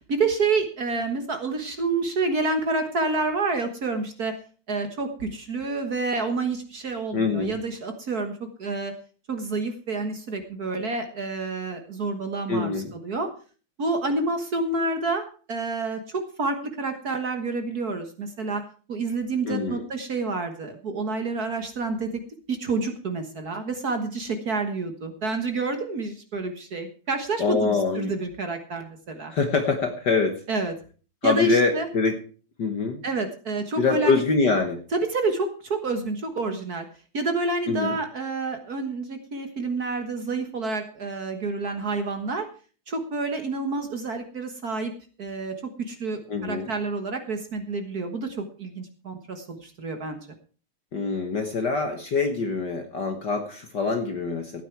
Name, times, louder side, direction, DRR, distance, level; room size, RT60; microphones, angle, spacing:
voice 1, 0.1-4.3 4.7-8.9 9.3-13.3 13.8-18.6 18.9-22.2 22.5-29.3 30.5-30.7 31.2-31.9 33.0-34.2 34.9-36.8 37.1-42.5 42.9-44.9 45.2-50.2, right 3 dB, 45° right, 6 dB, 1.3 m, -28 dB
voice 2, 7.1-7.6 12.5-12.9 19.5-19.8 27.4-28.1 29.3-30.4 31.2-32.2 32.6-33.0 33.8-34.8 37.7-37.9 46.3-46.7 50.9-54.6, left 4 dB, 50° left, 5 dB, 1.4 m, -24 dB
16.0 x 9.3 x 4.6 m, 0.39 s
omnidirectional pair, 3.4 m